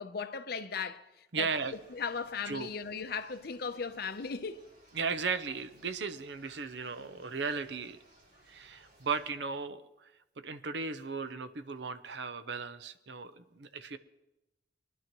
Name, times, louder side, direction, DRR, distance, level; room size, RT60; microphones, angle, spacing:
voice 1, 0.0-1.5 1.9-4.6, left 5 dB, 60° left, 0.7 m, -37 dB
voice 2, 1.3-1.7 2.5-2.7 4.9-8.0 8.5-10.1 10.4-14.0, right 5 dB, 75° right, 0.7 m, -36 dB
sound 1, 1.5-9.3, right 1 dB, 50° right, 5.7 m, -63 dB
21.5 x 11.0 x 3.0 m
head